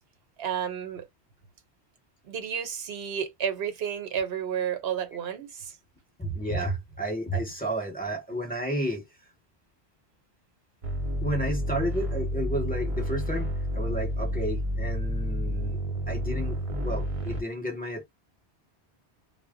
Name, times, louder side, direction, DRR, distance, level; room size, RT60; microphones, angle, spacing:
voice 1, 0.4-1.1 2.2-5.8, right 8 dB, 70° right, 1.0 m, -31 dB
voice 2, 6.2-9.0 11.2-15.8 16.1-18.0, right 1 dB, 10° left, 1.1 m, -32 dB
sound 1, 10.8-17.4, equal, 35° right, 0.7 m, -30 dB
2.1 x 2.1 x 3.7 m
omnidirectional pair, 1.1 m